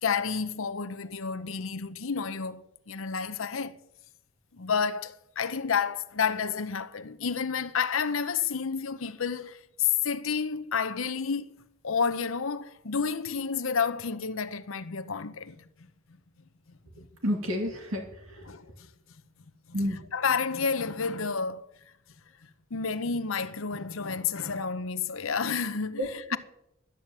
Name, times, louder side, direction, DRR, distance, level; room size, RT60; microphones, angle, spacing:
voice 1, 0.0-3.8 4.5-11.5 11.8-15.7 17.0-17.1 18.4-18.9 19.7-21.8 22.4-26.4, left 6 dB, 70° left, 0.8 m, -30 dB
voice 2, 17.2-18.4 19.7-20.0 26.0-26.4, equal, 70° right, 2.5 m, -30 dB
12.0 x 10.5 x 7.4 m
head